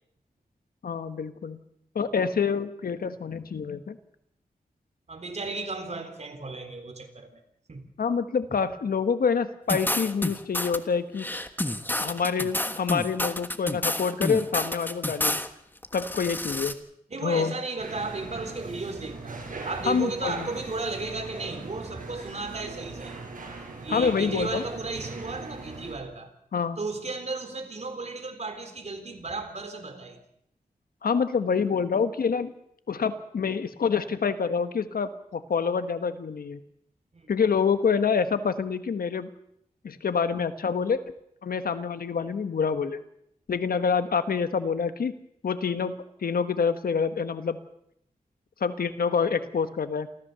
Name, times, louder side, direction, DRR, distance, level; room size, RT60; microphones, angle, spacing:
voice 1, 0.8-1.6 1.9-4.0 8.0-11.3 12.0-15.3 15.9-16.8 17.2-17.5 19.9-20.5 23.9-24.6 26.5-26.8 31.0-32.5 32.9-36.6 37.3-39.3 39.8-41.0 41.4-43.0 43.5-45.1 45.4-47.6 48.6-50.1, left 6 dB, 85° left, 11 dB, 1.3 m, -27 dB
voice 2, 5.1-7.4 7.7-7.9 17.1-23.2 23.8-26.3 26.8-30.2 37.1-37.3, right 3 dB, 50° right, 6 dB, 3.8 m, -34 dB
sound 1, 9.7-10.8 11.2-15.5 15.8-16.7, left 1 dB, 15° left, 1.4 m, -29 dB
sound 2, 17.8-25.9, right 3 dB, 70° right, 6.2 m, -40 dB
28.0 x 14.5 x 6.9 m, 0.73 s
wide cardioid pair, 90°, 15 cm